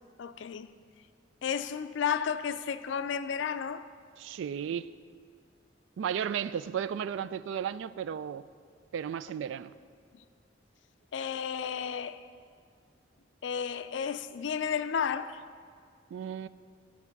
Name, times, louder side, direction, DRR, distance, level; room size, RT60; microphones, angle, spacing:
voice 1, 0.2-0.7 1.4-3.9 10.1-10.2 11.1-12.2 13.4-15.4, left 7 dB, 75° left, 0.4 m, -32 dB
voice 2, 4.2-4.9 6.0-8.4 8.9-9.7 16.1-16.5, right 8 dB, 85° right, 0.3 m, -34 dB
11.0 x 6.0 x 5.9 m
head